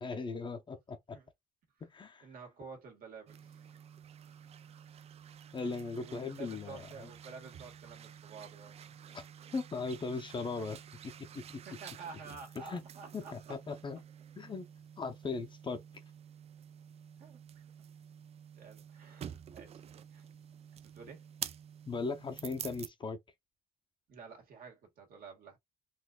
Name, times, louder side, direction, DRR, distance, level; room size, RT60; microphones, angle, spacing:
voice 1, 0.0-1.2 1.9-2.3 5.5-7.1 9.1-9.2 9.5-11.4 12.7-12.8 13.1-14.0 14.4-14.7 15.0-15.8 21.9-23.2, left 4 dB, 30° left, 0.6 m, -38 dB
voice 2, 2.2-3.6 6.0-8.9 11.6-13.6 17.2-17.6 18.6-19.8 20.1-20.3 20.7-21.2 24.1-25.6, right 5 dB, 60° right, 1.6 m, -50 dB
sound 1, 3.3-22.9, right 8 dB, 40° right, 0.4 m, -50 dB
4.1 x 2.6 x 2.3 m
cardioid pair, 110°, 17 cm